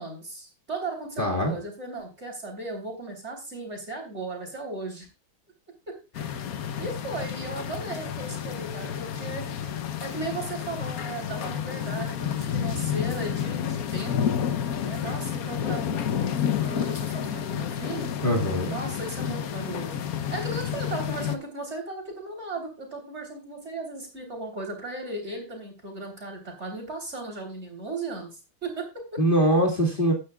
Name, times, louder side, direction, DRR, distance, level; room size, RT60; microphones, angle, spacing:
voice 1, 0.0-5.1 5.9-9.7 10.0-14.4 14.8-18.1 18.7-28.3 28.6-29.2, right 2 dB, 35° right, 2 dB, 3.7 m, -36 dB
voice 2, 1.2-1.5 18.2-18.8 29.2-30.1, equal, 30° left, -2 dB, 2.0 m, -22 dB
sound 1, 6.1-21.4, left 9 dB, 60° left, 1.1 m, -30 dB
15.0 x 9.5 x 2.3 m, 0.29 s
omnidirectional pair, 2.0 m